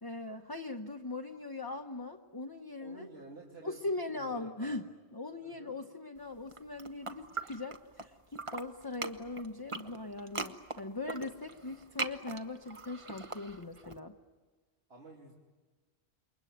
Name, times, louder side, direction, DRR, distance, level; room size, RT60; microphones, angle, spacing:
voice 1, 0.0-3.1 3.6-14.2, left 2 dB, 20° left, 5 dB, 0.9 m, -40 dB
voice 2, 2.8-3.8 4.1-4.8 5.4-5.7 14.9-15.3, right 3 dB, 70° right, -2 dB, 3.1 m, -51 dB
sound 1, 6.4-8.1 8.3-13.9, right 3 dB, 30° right, 1.1 m, -41 dB
28.5 x 22.5 x 9.3 m, 1.3 s
omnidirectional pair, 1.1 m